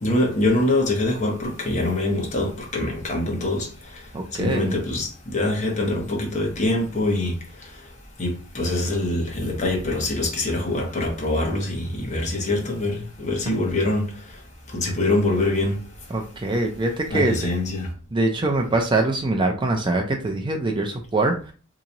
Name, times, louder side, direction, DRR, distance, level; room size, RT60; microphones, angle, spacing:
voice 1, 0.0-3.7 4.3-7.4 8.2-14.1 14.7-15.8 17.1-17.9, left 2 dB, 35° left, 1.0 m, -24 dB
voice 2, 4.1-4.7 16.1-17.4 18.1-21.5, right 2 dB, 25° right, 0.5 m, -23 dB
2.9 x 2.4 x 3.9 m
head